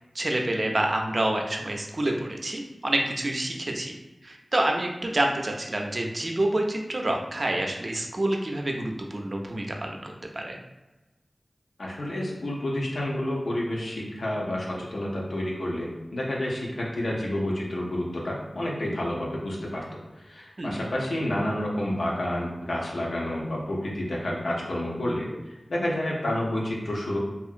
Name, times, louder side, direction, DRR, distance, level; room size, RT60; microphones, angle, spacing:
voice 1, 0.1-4.0 4.2-10.6 20.6-20.8, right 1 dB, 55° right, 2 dB, 0.4 m, -28 dB
voice 2, 11.8-25.3 25.7-27.2, left 1 dB, 85° left, -3 dB, 0.6 m, -29 dB
2.7 x 2.4 x 2.4 m, 1.1 s
wide cardioid pair, 45°, 0 cm